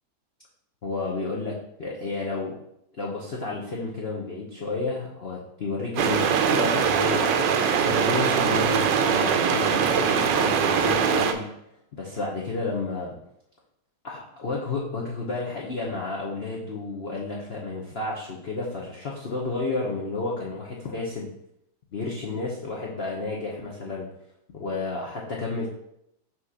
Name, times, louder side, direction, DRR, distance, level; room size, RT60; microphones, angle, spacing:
voice 1, 0.8-2.5 3.0-7.2 7.8-11.5 11.9-13.1 14.0-21.3 21.9-24.1 24.5-25.7, left 3 dB, 80° left, -4 dB, 0.5 m, -31 dB
sound 1, 6.0-11.3, right 7 dB, 70° right, 1.1 m, -22 dB
5.9 x 3.1 x 5.6 m, 0.78 s
omnidirectional pair, 2.4 m